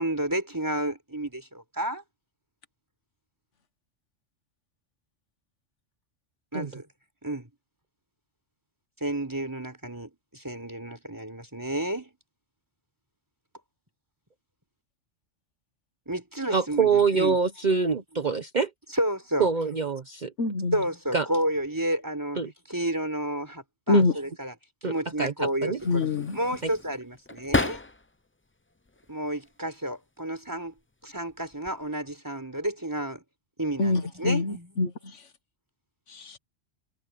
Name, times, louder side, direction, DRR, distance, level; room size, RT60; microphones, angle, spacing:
voice 1, 0.0-2.0 6.5-6.9 7.2-7.5 9.0-12.1 16.1-17.4 18.9-19.5 20.7-22.4 22.7-24.5 24.8-26.1 26.3-27.8 29.1-30.7 31.0-33.2 33.6-34.7, right 1 dB, 15° right, 4.3 m, -31 dB
voice 2, 16.5-18.7 19.4-20.3 21.1-21.3 22.4-22.5 23.9-24.0 24.8-25.3 25.6-25.8, right 5 dB, 40° right, 1.1 m, -25 dB
voice 3, 20.4-20.8 23.9-24.1 25.8-26.4 33.8-35.2 36.1-36.4, left 3 dB, 85° left, 1.7 m, -25 dB
sound 1, 25.8-28.3 28.7-29.6 30.5-30.8 31.2-31.9, left 2 dB, 15° left, 0.5 m, -33 dB
omnidirectional pair, 1.2 m